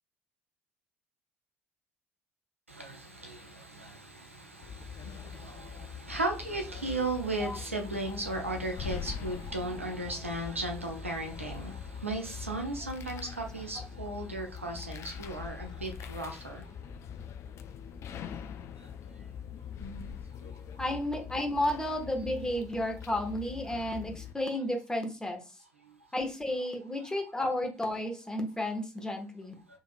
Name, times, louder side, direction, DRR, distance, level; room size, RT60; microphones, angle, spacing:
voice 1, 2.7-16.6 19.8-20.1, right 2 dB, 90° right, 3 dB, 0.5 m, -36 dB
sound 1, 4.6-24.3, left 7 dB, 45° left, 0.4 m, -43 dB
voice 2, 20.8-25.4 26.1-29.6, left 1 dB, 10° left, 3 dB, 0.9 m, -32 dB
3.6 x 3.0 x 2.4 m, 0.33 s
figure-of-eight pair, 55°, 7 cm